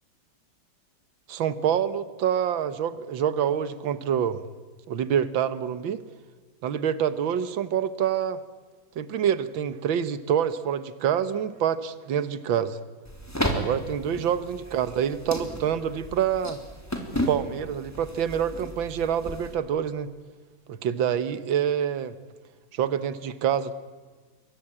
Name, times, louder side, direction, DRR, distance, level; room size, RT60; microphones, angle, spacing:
voice 1, 1.3-4.4 4.9-6.0 6.6-8.4 9.0-12.8 13.5-16.6 17.1-20.1 20.7-22.1 22.7-23.7, right 9 dB, 80° right, 14 dB, 1.9 m, -26 dB
sound 1, 13.0-19.6, equal, 10° left, 3.5 m, -33 dB
28.0 x 23.5 x 8.8 m, 1.4 s
omnidirectional pair, 2.1 m